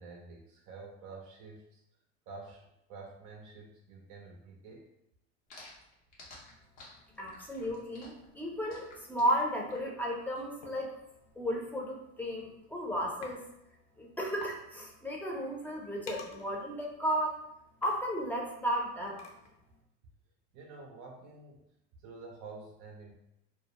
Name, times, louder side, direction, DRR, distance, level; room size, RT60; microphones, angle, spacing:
voice 1, 0.0-1.8 2.3-4.9 20.5-21.7 22.0-23.1, right 3 dB, 60° right, 0 dB, 0.5 m, -49 dB
sound 1, 5.5-10.4, left 2 dB, 90° left, 0.8 m, -53 dB
voice 2, 7.2-10.9 11.4-13.4 14.0-17.4 17.8-19.2, equal, 5° left, -2 dB, 0.6 m, -34 dB
sound 2, 10.6-10.8 11.9-12.0 12.4-12.7 13.2-13.4 13.7-13.8 14.1-14.2 14.4-14.6 15.1-19.7, left 3 dB, 45° left, 0.6 m, -49 dB
2.3 x 2.0 x 2.9 m, 0.83 s
supercardioid pair, 95°, 34 cm